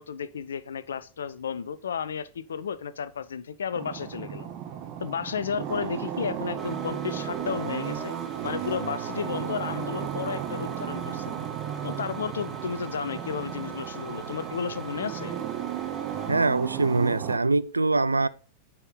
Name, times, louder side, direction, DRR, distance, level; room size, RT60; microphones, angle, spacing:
voice 1, 0.0-4.5 5.0-8.1 8.4-11.3 11.8-15.3, left 7 dB, 65° left, 0.6 m, -33 dB
sound 1, 3.7-17.4, right 10 dB, 40° right, 1.5 m, -34 dB
sound 2, 6.6-16.3, right 4 dB, 10° right, 3.1 m, -44 dB
voice 2, 16.3-18.3, right 3 dB, 80° right, 0.4 m, -23 dB
9.8 x 4.7 x 5.2 m
figure-of-eight pair, 90°, 0 cm